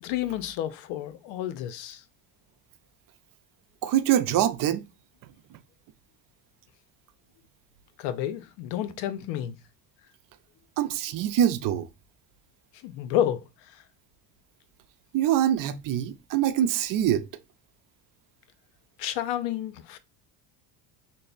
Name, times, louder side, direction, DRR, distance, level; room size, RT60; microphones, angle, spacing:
voice 1, 0.0-2.0 8.0-9.6 12.8-13.8 19.0-20.0, left 11 dB, 85° left, 0.6 m, -30 dB
voice 2, 3.8-4.9 5.5-5.6 10.8-11.9 15.1-17.3, right 11 dB, 50° right, 0.5 m, -24 dB
3.3 x 2.0 x 4.1 m
cardioid pair, 110°, 44 cm